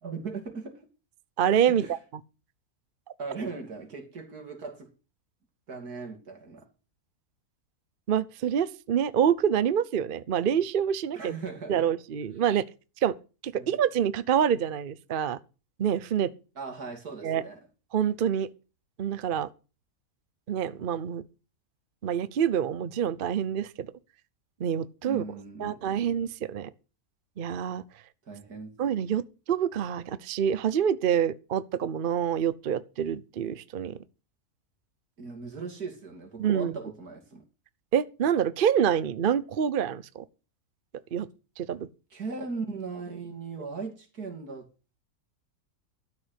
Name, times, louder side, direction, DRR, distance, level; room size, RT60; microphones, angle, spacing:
voice 1, 0.0-0.8 1.7-1.9 3.2-4.9 5.7-6.7 11.1-11.9 13.5-13.8 16.5-17.6 25.1-26.0 28.3-28.8 35.2-37.4 42.1-44.7, right 4 dB, 80° right, 3.2 m, -38 dB
voice 2, 1.4-2.0 8.1-11.3 11.7-12.6 13.0-13.1 13.4-15.4 15.8-16.3 17.2-17.4 17.9-18.5 19.0-19.5 20.5-21.2 22.0-23.9 24.6-25.2 25.6-26.7 27.4-27.8 28.8-34.0 36.4-36.8 37.9-40.2 41.1-41.3 41.6-41.9, right 8 dB, 50° right, 0.7 m, -26 dB
12.5 x 6.6 x 8.1 m
omnidirectional pair, 1.6 m